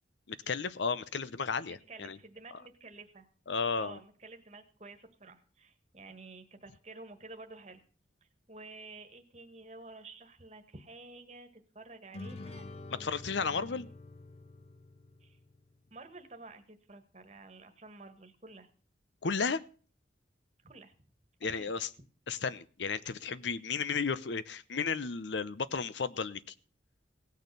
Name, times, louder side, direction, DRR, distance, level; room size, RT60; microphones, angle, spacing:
voice 1, 0.3-2.2 3.5-4.0 13.0-13.9 19.2-19.6 21.4-21.9 22.3-26.4, left 5 dB, 75° left, 16 dB, 0.7 m, -33 dB
voice 2, 1.7-3.3 3.7-7.8 8.5-12.6 12.9-13.1 13.4-13.9 15.2-15.4 15.9-18.7 20.6-20.9 21.4-21.7, right 3 dB, 35° right, 6 dB, 1.5 m, -51 dB
sound 1, 12.1-15.7, left 2 dB, 35° left, 0.7 m, -47 dB
17.0 x 6.5 x 6.7 m, 0.40 s
head